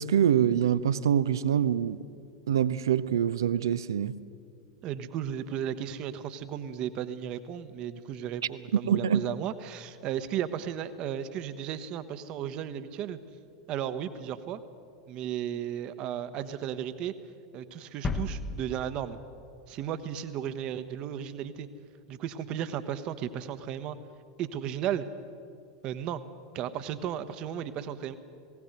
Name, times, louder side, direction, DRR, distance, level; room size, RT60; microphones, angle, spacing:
voice 1, 0.0-2.0 2.5-4.1 8.7-9.2, right 9 dB, 70° right, 0.6 m, -25 dB
voice 2, 4.8-13.2 13.7-14.6 15.1-17.1 17.5-19.2 19.7-21.7 22.1-24.0 24.4-25.0 25.8-26.2 26.5-28.2, right 9 dB, 40° right, 1.1 m, -34 dB
sound 1, 18.0-19.9 20.2-20.3, left 2 dB, 25° left, 1.1 m, -35 dB
19.0 x 17.0 x 7.9 m
figure-of-eight pair, 85°, 2 cm